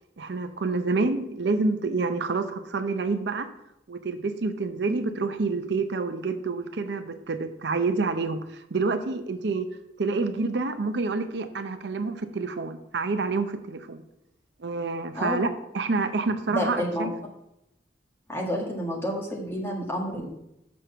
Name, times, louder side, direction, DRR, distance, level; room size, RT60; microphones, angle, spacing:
voice 1, 0.2-3.5 3.9-9.7 10.0-14.0 14.6-15.5 15.7-17.1, right 3 dB, 70° right, 9 dB, 0.6 m, -28 dB
voice 2, 15.1-15.5 16.5-17.1 18.3-20.3, equal, 15° left, -2 dB, 1.7 m, -29 dB
6.4 x 6.0 x 6.6 m, 0.85 s
head